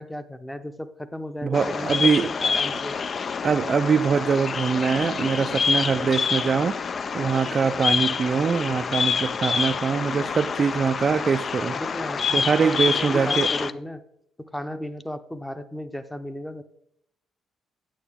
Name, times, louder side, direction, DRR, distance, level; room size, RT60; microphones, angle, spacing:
voice 1, 0.0-3.0 11.7-14.0 14.4-16.6, left 1 dB, 5° left, 0.7 m, -35 dB
voice 2, 1.4-2.3 3.4-6.7 7.1-11.8 12.3-13.5, right 6 dB, 45° right, 0.3 m, -23 dB
Bird vocalization bird call bird song, 1.5-13.7, left 5 dB, 45° left, 0.4 m, -27 dB
9.1 x 8.7 x 3.5 m
cardioid pair, 90°, 0 cm